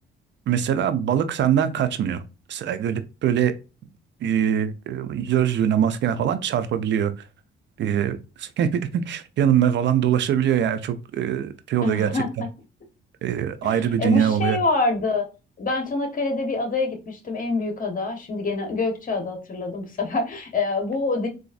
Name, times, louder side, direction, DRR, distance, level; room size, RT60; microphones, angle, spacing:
voice 1, 0.5-2.2 2.5-3.5 4.2-7.1 7.8-12.1 13.2-14.6, right 9 dB, 65° right, 0.5 m, -23 dB
voice 2, 11.8-12.3 13.6-15.3 15.6-21.3, left 3 dB, 45° left, 1.2 m, -26 dB
3.9 x 2.5 x 2.4 m
cardioid pair, 90°, 20 cm